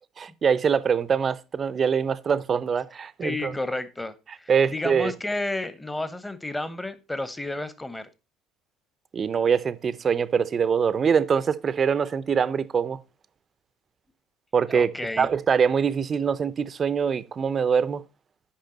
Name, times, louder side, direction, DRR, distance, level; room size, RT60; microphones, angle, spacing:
voice 1, 0.2-3.5 4.5-5.1 9.1-13.0 14.5-14.9 15.2-18.0, right 6 dB, 35° right, 0.6 m, -23 dB
voice 2, 3.2-8.1 14.7-15.3, left 2 dB, 10° left, 1.0 m, -31 dB
8.5 x 5.5 x 4.0 m
figure-of-eight pair, 60°, 0 cm